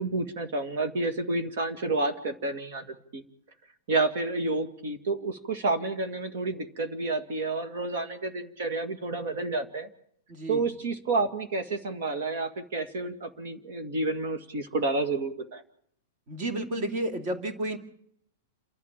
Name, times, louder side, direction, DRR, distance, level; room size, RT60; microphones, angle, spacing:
voice 1, 0.0-2.8 3.1-3.2 3.9-9.9 10.5-15.6, right 3 dB, 55° right, 6 dB, 2.1 m, -30 dB
voice 2, 10.3-10.7 16.3-17.8, right 1 dB, 35° right, 6 dB, 2.4 m, -31 dB
29.5 x 12.5 x 7.5 m, 0.69 s
supercardioid pair, 170°, 0 cm